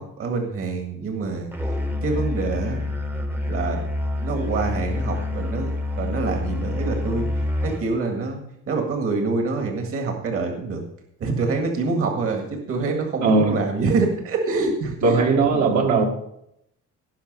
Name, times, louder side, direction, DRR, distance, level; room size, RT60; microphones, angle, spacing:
voice 1, 0.0-1.5 2.0-2.9 3.5-3.8 4.2-7.3 7.6-8.4 8.7-10.8 11.2-15.2 15.5-15.8, right 3 dB, 45° right, 3 dB, 1.9 m, -26 dB
Musical instrument, 1.5-7.9, left 2 dB, 5° right, 0.9 m, -27 dB
voice 2, 13.2-13.6 15.0-16.0, right 4 dB, 65° right, 1 dB, 2.0 m, -18 dB
17.5 x 5.8 x 5.3 m, 0.78 s
cardioid pair, 170°, 30 cm